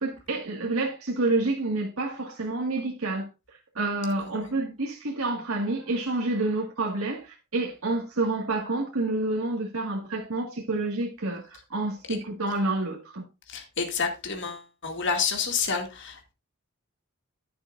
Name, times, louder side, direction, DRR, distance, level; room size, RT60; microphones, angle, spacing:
voice 1, 0.0-13.2, right 2 dB, 85° right, 1.8 m, -29 dB
voice 2, 13.5-16.2, left 5 dB, 60° left, 2.2 m, -29 dB
10.5 x 9.9 x 2.5 m
head